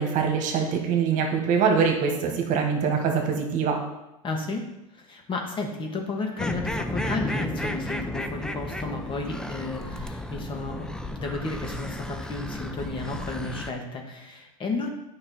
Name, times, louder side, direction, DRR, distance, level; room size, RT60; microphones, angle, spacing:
voice 1, 0.0-3.8, right 6 dB, 45° right, 2 dB, 1.7 m, -24 dB
voice 2, 4.2-4.7 4.9-14.9, left 3 dB, 25° left, 2 dB, 1.6 m, -33 dB
sound 1, 6.4-13.7, left 1 dB, 5° left, 0.6 m, -33 dB
8.7 x 5.5 x 4.3 m, 0.92 s
hypercardioid pair, 110°, 18 cm